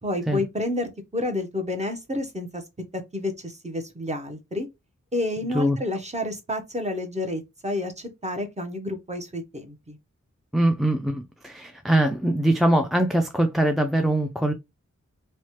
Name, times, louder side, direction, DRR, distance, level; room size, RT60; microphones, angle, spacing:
voice 1, 0.0-2.6 2.9-4.7 5.1-10.0, left 1 dB, 20° right, 0.7 m, -30 dB
voice 2, 10.5-14.5, right 1 dB, ahead, 0.3 m, -22 dB
3.1 x 2.1 x 2.8 m
wide cardioid pair, 60°, 31 cm